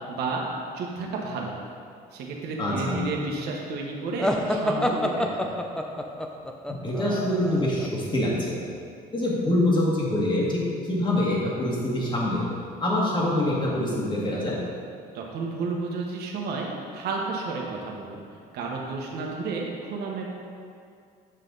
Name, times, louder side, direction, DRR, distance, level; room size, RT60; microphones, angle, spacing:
voice 1, 0.1-0.4 0.7-1.6 2.1-5.6 15.1-18.2 18.5-20.2, right 3 dB, 75° right, -1 dB, 1.2 m, -31 dB
voice 2, 2.6-3.0 6.8-8.5 9.1-12.5 12.8-14.6, left 1 dB, 30° left, -4 dB, 2.0 m, -25 dB
sound 1, 4.2-7.9, left 1 dB, 5° left, 0.5 m, -27 dB
8.0 x 5.7 x 3.9 m, 2.3 s
cardioid pair, 110°, 17 cm